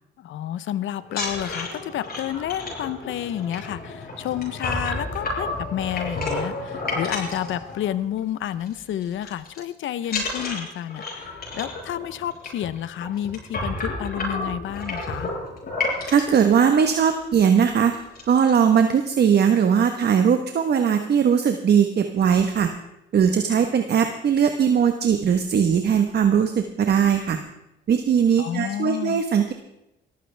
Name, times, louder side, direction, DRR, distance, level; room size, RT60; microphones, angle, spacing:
voice 1, 0.2-15.3 28.4-29.2, left 11 dB, 75° left, 15 dB, 0.9 m, -30 dB
sound 1, 1.0-8.2 8.5-8.8 9.0-9.6 10.0-16.4 17.1-17.2 17.5-17.7 17.9-18.5, left 2 dB, 50° left, 7.8 m, -31 dB
voice 2, 16.1-17.9 18.3-22.7 23.1-27.4 27.9-29.5, right 7 dB, 55° right, 6 dB, 1.2 m, -19 dB
21.5 x 14.5 x 3.5 m, 0.89 s
cardioid pair, 90°, 20 cm